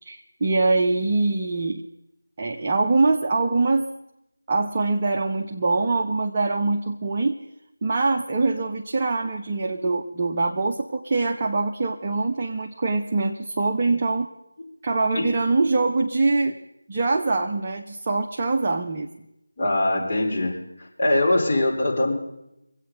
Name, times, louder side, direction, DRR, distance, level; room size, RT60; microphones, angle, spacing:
voice 1, 0.0-1.8 2.4-3.9 4.5-7.4 7.8-14.3 14.8-16.5 16.9-19.2, right 3 dB, 25° right, 1 dB, 0.8 m, -23 dB
voice 2, 19.6-20.6 21.0-22.1, left 1 dB, 30° left, -3 dB, 3.5 m, -22 dB
24.5 x 8.7 x 5.3 m, 0.85 s
figure-of-eight pair, 165°, 0 cm